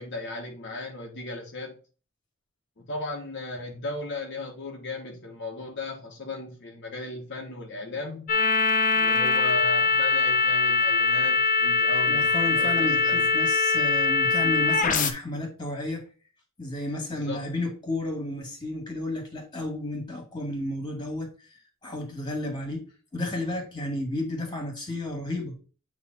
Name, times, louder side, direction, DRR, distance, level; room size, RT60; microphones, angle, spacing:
voice 1, 0.0-1.8 2.8-8.4 8.9-13.3 17.1-17.4, left 2 dB, 55° left, 1.1 m, -36 dB
sound 1, 8.3-15.1, left 4 dB, 40° left, 0.8 m, -22 dB
voice 2, 12.1-16.0 16.6-21.3 21.8-22.8 23.1-25.5, left 1 dB, 20° left, 2.0 m, -32 dB
8.4 x 3.1 x 4.1 m
head